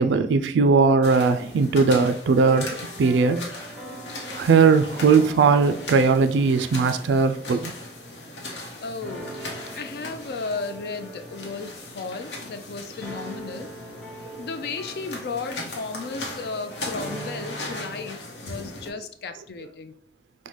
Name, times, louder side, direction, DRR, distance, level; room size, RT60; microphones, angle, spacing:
voice 1, 0.0-3.5 4.4-7.7, right 4 dB, 90° right, 9 dB, 0.3 m, -19 dB
sound 1, 1.0-18.9, left 2 dB, 90° left, 0.8 m, -38 dB
sound 2, 2.3-8.7 9.0-18.1, right 1 dB, 5° left, 0.8 m, -42 dB
voice 2, 8.8-9.3 9.7-13.7 14.4-18.2 18.4-19.9, left 4 dB, 65° left, 7 dB, 0.4 m, -34 dB
5.5 x 2.1 x 3.1 m, 0.62 s
head